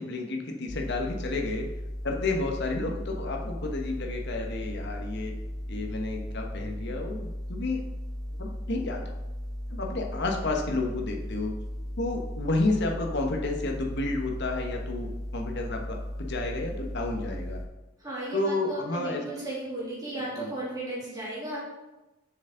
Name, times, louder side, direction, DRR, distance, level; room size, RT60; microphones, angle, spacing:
voice 1, 0.0-1.7 2.0-5.3 5.7-7.8 8.4-9.0 9.7-11.5 12.0-17.6 18.3-19.2 20.3-20.5, left 2 dB, 55° left, 2 dB, 1.1 m, -31 dB
sound 1, 0.7-17.7, equal, 20° left, 0.8 m, -36 dB
voice 2, 18.0-21.6, right 2 dB, 20° right, -7 dB, 2.7 m, -35 dB
7.3 x 6.7 x 3.8 m, 1.0 s
head